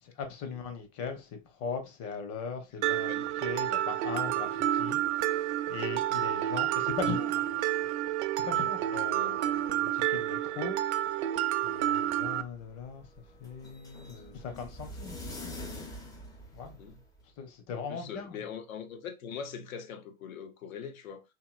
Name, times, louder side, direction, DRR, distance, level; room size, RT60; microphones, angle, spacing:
voice 1, 0.0-7.4 8.3-11.3 11.6-13.1 13.4-15.5 16.5-16.8 17.4-18.4, left 5 dB, 35° left, 0.9 m, -39 dB
Mallet percussion, 2.8-12.4, right 13 dB, 55° right, 0.5 m, -29 dB
sound 1, 12.2-17.2, left 1 dB, 10° left, 0.4 m, -45 dB
voice 2, 17.7-21.2, left 7 dB, 75° left, 0.8 m, -42 dB
2.9 x 2.8 x 2.4 m
hypercardioid pair, 100°, 41 cm